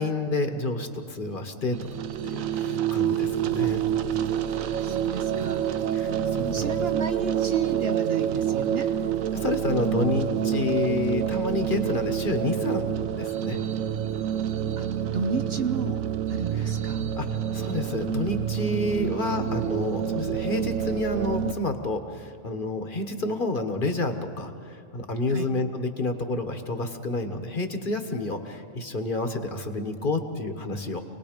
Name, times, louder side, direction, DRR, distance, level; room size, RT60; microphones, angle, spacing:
voice 1, 0.0-1.9 2.2-3.8 5.9-6.9 9.3-13.6 17.2-17.3 17.5-31.0, left 2 dB, 40° left, 7 dB, 1.3 m, -29 dB
sound 1, 1.7-21.5, right 9 dB, 85° right, 1.1 m, -27 dB
voice 2, 4.6-5.7 6.4-8.9 14.8-14.9 15.1-17.1 19.0-19.5 25.3-25.5, right 5 dB, 55° right, 7 dB, 0.9 m, -33 dB
27.0 x 19.5 x 5.1 m, 2.3 s
omnidirectional pair, 1.4 m